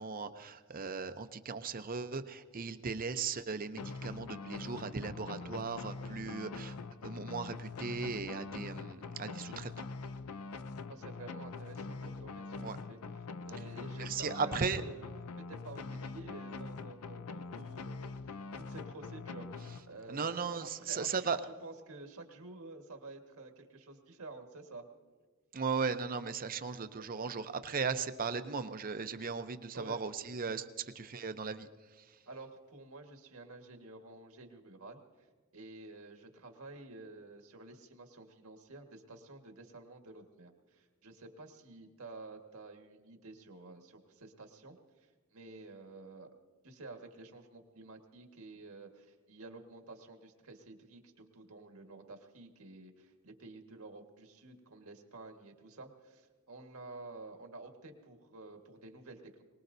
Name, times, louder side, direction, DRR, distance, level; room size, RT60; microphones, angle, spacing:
voice 1, 0.0-6.8 7.0-9.8 12.6-12.8 14.0-14.8 20.1-21.4 25.5-30.6 31.0-31.7 32.0-32.2, right 5 dB, 40° right, 10 dB, 0.7 m, -37 dB
sound 1, 3.8-20.3, left 4 dB, 85° left, 0.5 m, -44 dB
voice 2, 10.9-13.0 13.4-15.1 15.4-18.1 18.6-24.9 26.9-27.4 29.7-30.0 30.4-30.6 32.2-46.3 46.6-59.4, right 3 dB, 75° right, 4 dB, 1.7 m, -51 dB
23.0 x 20.0 x 2.7 m, 1.4 s
head